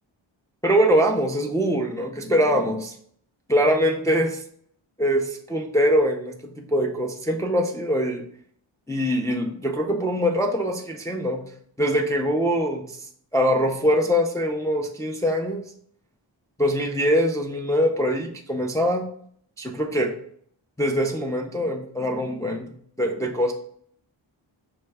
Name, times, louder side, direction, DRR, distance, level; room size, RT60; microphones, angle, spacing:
voice 1, 0.6-2.9 3.5-4.4 5.0-8.2 8.9-11.4 11.8-13.0 13.3-15.6 16.6-19.0 19.6-20.1 20.8-23.5, equal, 10° left, 2 dB, 0.3 m, -23 dB
3.5 x 2.2 x 3.2 m, 0.63 s
wide cardioid pair, 50°, 48 cm